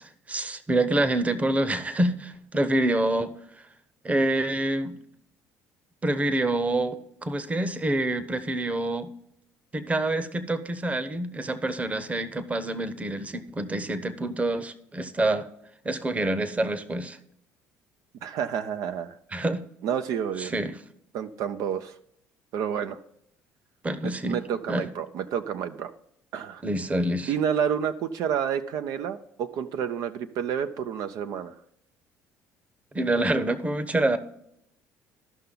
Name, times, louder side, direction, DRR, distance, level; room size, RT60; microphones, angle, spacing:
voice 1, 0.0-3.3 4.0-5.0 6.0-9.1 9.7-15.5 15.8-17.2 19.3-19.6 20.4-20.8 23.8-24.4 24.7-24.9 26.6-27.3 32.9-34.2, right 1 dB, 20° right, 13 dB, 0.9 m, -27 dB
voice 2, 18.2-19.2 19.8-20.5 21.1-21.9 22.5-23.0 24.0-25.9 26.3-26.6 27.3-31.5, right 8 dB, 65° right, 9 dB, 0.6 m, -29 dB
13.5 x 5.7 x 3.8 m, 0.76 s
supercardioid pair, 75°, 7 cm